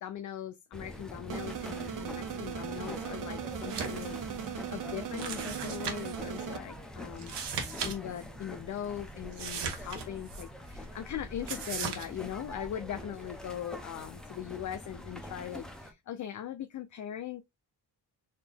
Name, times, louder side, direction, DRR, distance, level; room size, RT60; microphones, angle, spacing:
voice 1, 0.0-4.2 4.7-17.4, left 10 dB, 45° left, 0.4 m, -40 dB
sound 1, 0.7-15.9, left 1 dB, ahead, 0.7 m, -44 dB
sound 2, 1.3-6.6, right 8 dB, 45° right, 0.6 m, -38 dB
sound 3, 3.6-4.1 4.4-4.5 5.2-6.2 7.2-7.9 8.2-8.3 9.3-10.4 11.5-12.1, right 6 dB, 70° right, 1.2 m, -37 dB
4.1 x 2.9 x 3.3 m
cardioid pair, 120°, 44 cm